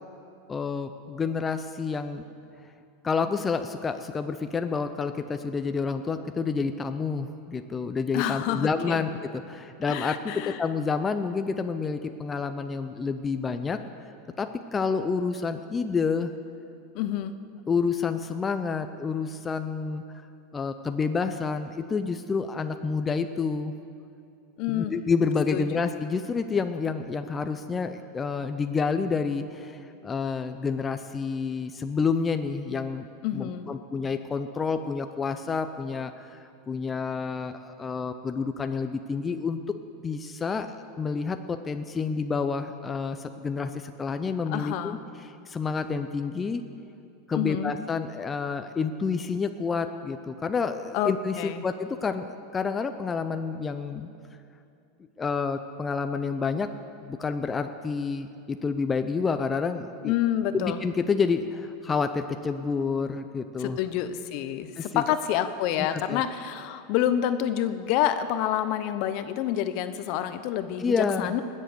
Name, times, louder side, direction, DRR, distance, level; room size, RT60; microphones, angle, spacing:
voice 1, 0.5-2.2 3.0-13.8 14.4-16.3 17.7-20.2 20.5-23.7 24.7-33.1 33.3-39.7 40.0-45.0 45.2-46.6 47.3-54.1 55.2-56.7 57.0-60.1 60.5-63.8 64.8-65.0 66.1-66.2 70.8-71.3, left 5 dB, 20° left, 8 dB, 0.6 m, -29 dB
voice 2, 8.1-9.0 9.9-10.6 16.9-17.3 24.6-24.9 25.5-25.7 33.2-33.7 44.5-45.0 47.3-47.7 50.9-51.6 60.0-60.8 63.6-71.4, left 11 dB, 55° left, 11 dB, 0.8 m, -28 dB
20.0 x 7.5 x 6.8 m, 2.6 s
supercardioid pair, 120°, 0 cm